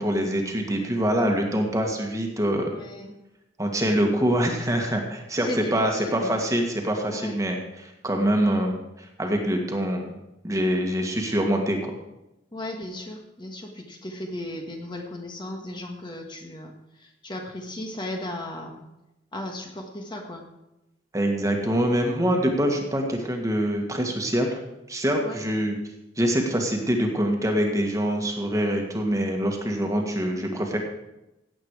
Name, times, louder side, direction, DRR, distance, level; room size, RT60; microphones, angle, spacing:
voice 1, 0.0-2.7 3.6-10.2 10.4-11.9 21.1-24.6 24.9-25.8 26.2-30.8, equal, 20° right, 2 dB, 1.7 m, -25 dB
voice 2, 2.7-3.1 5.4-6.3 7.1-7.3 12.5-16.7 17.0-18.8 19.3-20.4 25.2-25.4, left 1 dB, 25° left, 2 dB, 1.4 m, -36 dB
16.5 x 8.2 x 4.8 m, 0.93 s
head